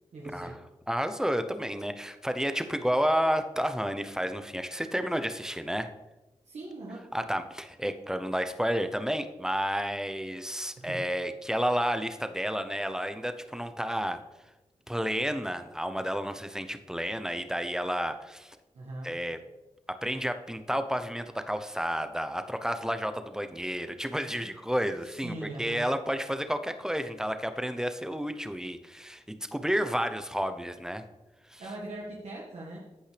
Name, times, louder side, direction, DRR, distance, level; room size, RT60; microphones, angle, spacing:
voice 1, 0.1-0.6 6.5-7.1 10.8-11.0 18.7-19.1 25.2-25.9 31.6-32.8, right 2 dB, 75° right, -5 dB, 1.7 m, -40 dB
voice 2, 0.9-5.9 7.1-14.2 14.9-18.6 19.0-19.4 20.0-31.0 31.5-31.6, equal, 5° right, 9 dB, 0.8 m, -31 dB
14.5 x 5.4 x 3.4 m, 1.1 s
cardioid pair, 55°, 12 cm